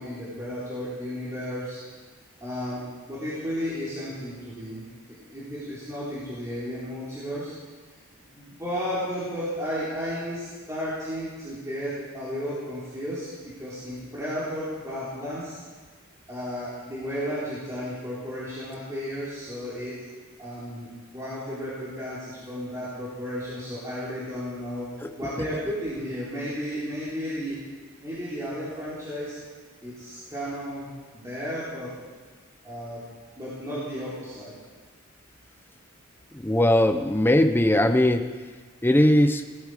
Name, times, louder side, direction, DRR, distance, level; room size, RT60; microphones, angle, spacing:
voice 1, 0.0-1.8 2.4-2.8 3.1-4.8 5.3-7.5 8.3-15.6 16.3-19.9 20.4-20.9 21.1-24.9 25.2-27.6 28.0-29.3 29.8-31.9 32.6-33.0 33.4-34.5, equal, 15° right, -11 dB, 3.7 m, -33 dB
voice 2, 36.4-38.2 38.8-39.4, left 1 dB, 10° left, 6 dB, 0.7 m, -19 dB
18.0 x 13.0 x 5.0 m, 1.4 s
head